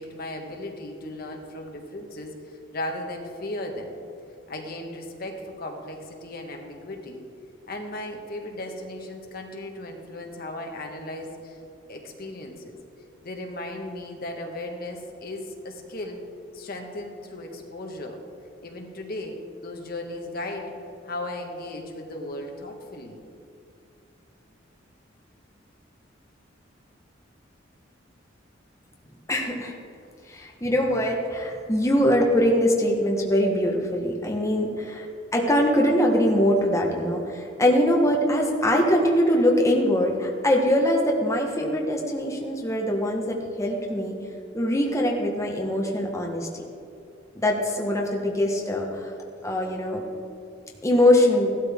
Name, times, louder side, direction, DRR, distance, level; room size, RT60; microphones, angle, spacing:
voice 1, 0.0-4.0 4.5-7.2 7.7-11.6 11.9-12.8 13.2-16.2 16.5-18.2 18.6-20.7 21.0-23.2, left 1 dB, 50° left, 2 dB, 1.5 m, -36 dB
voice 2, 29.3-29.7 30.3-35.1 35.3-44.1 44.5-46.6 47.4-49.1 49.4-50.0 50.8-51.5, left 1 dB, 15° left, -1 dB, 1.2 m, -22 dB
16.0 x 12.5 x 3.6 m, 2.6 s
head